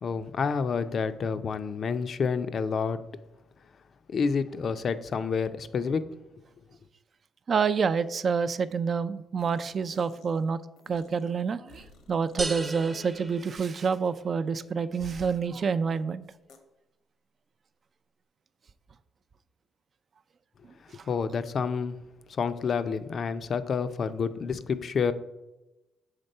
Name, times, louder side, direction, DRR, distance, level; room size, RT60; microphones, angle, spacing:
voice 1, 0.0-3.0 4.1-6.1 21.1-22.0 22.3-25.1, left 5 dB, 50° left, 11 dB, 0.4 m, -29 dB
voice 2, 7.5-10.6 10.9-16.2 20.9-21.1, right 5 dB, 45° right, 13 dB, 0.3 m, -28 dB
sound 1, 9.4-10.5 10.8-13.5 13.8-13.9 15.0-15.4 16.5-16.6, left 4 dB, 85° left, 1.0 m, -53 dB
sound 2, 12.4-14.2, right 2 dB, 25° right, 0.7 m, -37 dB
6.6 x 3.5 x 5.3 m, 0.99 s
cardioid pair, 90°, 0 cm